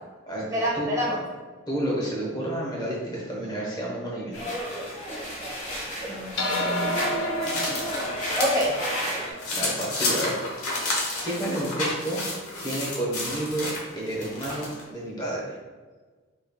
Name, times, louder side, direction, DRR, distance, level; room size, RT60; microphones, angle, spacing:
voice 1, 0.5-1.2 6.1-7.1 7.5-7.7 8.3-8.7, equal, 15° right, -6 dB, 1.0 m, -28 dB
voice 2, 1.7-4.4 9.5-10.4 10.8-11.0 11.2-12.2 12.6-15.6, right 1 dB, 20° left, -4 dB, 1.0 m, -30 dB
sound 1, 4.3-9.3, equal, 35° left, 1.3 m, -32 dB
sound 2, 6.4-11.0, left 1 dB, 60° left, 0.6 m, -32 dB
sound 3, 6.5-8.7 9.1-14.8, left 2 dB, 90° left, 1.1 m, -31 dB
5.3 x 4.4 x 2.3 m, 1.4 s
head